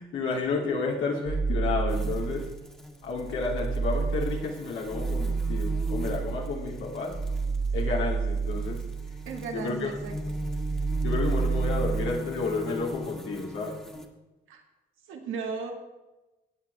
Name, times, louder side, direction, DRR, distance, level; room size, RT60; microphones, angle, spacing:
voice 1, 0.0-2.5 3.0-7.2 7.7-8.8 9.5-9.9 11.0-13.8, left 4 dB, 85° left, -2 dB, 3.0 m, -31 dB
sound 1, 1.3-2.7 3.1-9.6 9.9-12.2, right 5 dB, 15° right, 0.6 m, -30 dB
sound 2, 1.9-14.1, left 1 dB, 5° left, 1.7 m, -40 dB
voice 2, 9.3-10.2 14.5-14.6 15.1-15.7, right 5 dB, 85° right, 2 dB, 2.1 m, -35 dB
17.0 x 8.6 x 3.5 m, 1.1 s
cardioid pair, 90°, 20 cm